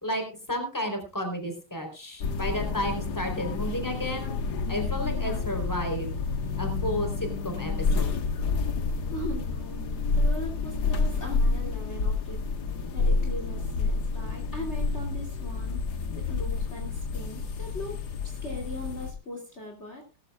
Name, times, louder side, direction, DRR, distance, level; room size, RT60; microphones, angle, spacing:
voice 1, 0.0-4.3 4.7-6.2 6.6-8.2, equal, 10° left, 5 dB, 3.8 m, -32 dB
sound 1, 2.2-19.1, left 4 dB, 60° left, 1.8 m, -29 dB
voice 2, 9.1-12.4 12.9-15.8 16.1-18.0 18.2-20.0, left 1 dB, 35° left, 1 dB, 3.1 m, -39 dB
18.5 x 14.5 x 2.4 m, 0.31 s
omnidirectional pair, 2.1 m